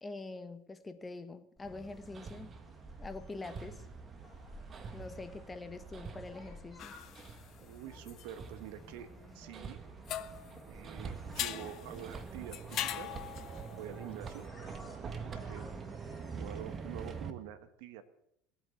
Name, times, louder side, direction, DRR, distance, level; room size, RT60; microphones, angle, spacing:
voice 1, 0.0-2.5 3.0-3.8 4.9-7.0 15.6-15.9, left 3 dB, 20° left, 1.4 m, -45 dB
sound 1, 1.6-16.6, left 1 dB, 5° left, 7.0 m, -55 dB
Hammer, 1.6-17.3, right 5 dB, 35° right, 1.5 m, -46 dB
sound 2, 6.8-9.8 10.0-14.4, left 12 dB, 50° left, 1.0 m, -42 dB
voice 2, 7.6-9.1 9.3-9.8 10.7-13.1 13.7-14.5 15.0-15.7 16.3-18.0, right 11 dB, 70° right, 1.0 m, -47 dB
18.0 x 8.5 x 8.3 m
hypercardioid pair, 75°, 0 cm